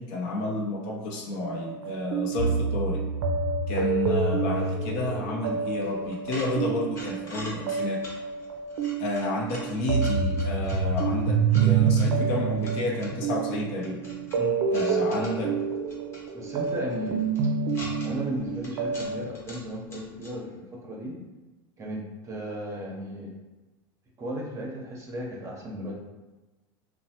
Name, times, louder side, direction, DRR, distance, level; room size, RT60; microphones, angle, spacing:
voice 1, 0.0-3.0 3.7-8.0 9.0-14.0 14.7-15.5, left 2 dB, 60° left, 0 dB, 0.6 m, -31 dB
sound 1, 1.4-19.3, right 5 dB, 70° right, 0.4 m, -27 dB
sound 2, 4.2-20.4, left 1 dB, 20° left, 0.8 m, -46 dB
voice 2, 14.4-15.0 16.3-17.2 18.0-21.2 21.8-23.3 24.2-25.9, equal, 25° right, -2 dB, 0.7 m, -35 dB
3.0 x 2.1 x 2.8 m, 1.1 s
supercardioid pair, 115°, 12 cm